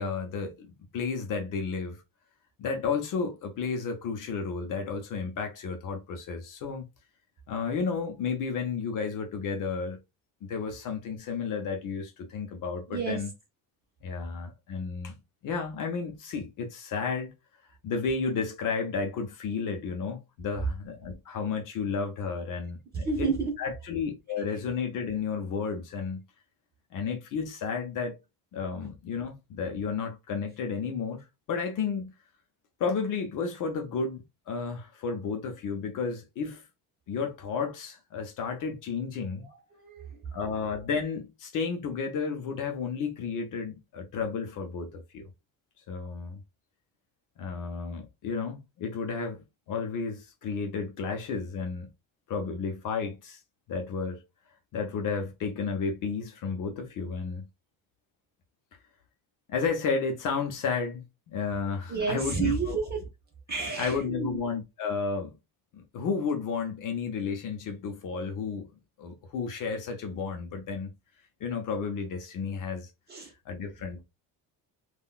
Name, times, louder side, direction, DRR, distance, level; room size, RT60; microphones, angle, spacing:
voice 1, 0.0-2.0 2.6-6.8 7.5-10.0 10.4-13.3 14.0-15.2 15.4-17.3 17.8-23.3 23.6-26.2 26.9-28.2 28.5-32.1 32.8-36.6 37.1-39.5 40.3-45.3 45.9-46.4 47.4-51.9 52.3-53.4 53.7-54.2 54.7-57.4 59.5-62.8 63.8-65.3 65.7-68.7 69.0-70.9 71.4-72.9 73.5-74.0, left 5 dB, 55° left, 0.8 m, -32 dB
voice 2, 12.9-13.2 23.0-23.5 39.4-40.2 61.9-63.1 63.5-64.4 73.1-73.3, right 4 dB, 25° right, 1.0 m, -30 dB
3.7 x 2.4 x 2.3 m
cardioid pair, 175°, 39 cm